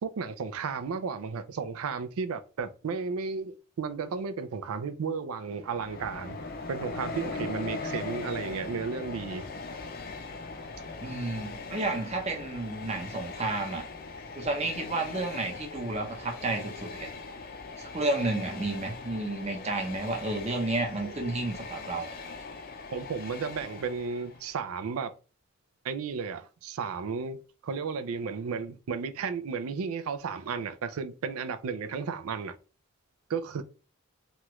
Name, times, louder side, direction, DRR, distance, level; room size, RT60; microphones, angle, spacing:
voice 1, 0.0-6.4 6.7-9.5 21.0-21.3 22.9-25.1 25.8-32.6 33.3-33.6, right 5 dB, 85° right, 0.4 m, -34 dB
Train, 5.6-24.5, left 3 dB, 45° left, 0.4 m, -40 dB
voice 2, 11.0-13.8 14.4-17.1 17.9-22.1, right 2 dB, 30° right, 0.6 m, -31 dB
3.0 x 2.3 x 3.0 m
head